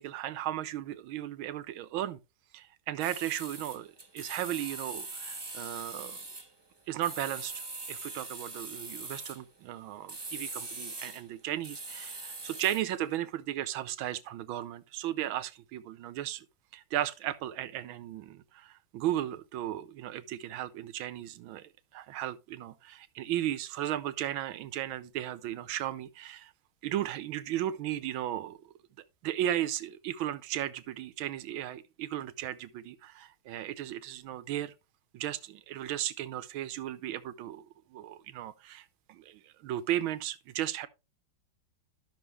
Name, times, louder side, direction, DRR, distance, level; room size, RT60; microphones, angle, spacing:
voice 1, 0.0-2.2 2.5-6.2 6.9-7.6 7.9-16.4 16.7-26.5 26.8-28.6 29.2-34.7 35.1-37.7 37.9-40.9, right 12 dB, 85° right, 1.5 m, -35 dB
sound 1, 3.0-6.5 7.0-9.4 10.1-11.3 11.6-12.9, right 3 dB, 15° right, 0.8 m, -42 dB
12.0 x 6.2 x 3.2 m
omnidirectional pair, 2.2 m